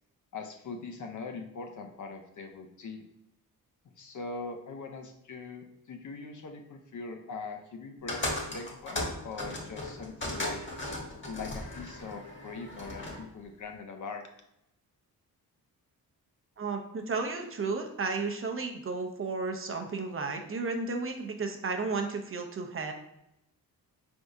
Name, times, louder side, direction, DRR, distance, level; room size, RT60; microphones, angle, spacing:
voice 1, 0.3-3.1 4.0-10.6 11.3-14.3, left 4 dB, 55° left, 4 dB, 0.7 m, -41 dB
sound 1, 8.1-13.2, left 1 dB, 30° left, 1.2 m, -36 dB
voice 2, 16.6-22.9, right 4 dB, 35° right, 4 dB, 0.6 m, -33 dB
4.6 x 3.5 x 2.6 m, 0.83 s
cardioid pair, 95°, 37 cm